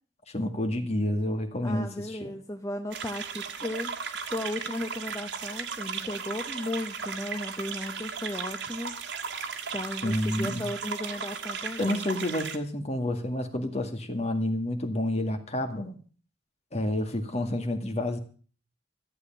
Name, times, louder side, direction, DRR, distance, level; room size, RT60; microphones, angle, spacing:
voice 1, 0.3-2.3 10.0-10.7 11.8-16.0 16.7-18.2, left 1 dB, 35° left, 6 dB, 2.1 m, -29 dB
voice 2, 1.6-3.9 4.2-9.0 9.7-12.1, left 1 dB, 20° left, 5 dB, 0.9 m, -35 dB
sound 1, 2.9-12.6, right 6 dB, 85° right, 2.0 m, -36 dB
14.5 x 8.3 x 7.4 m, 0.41 s
head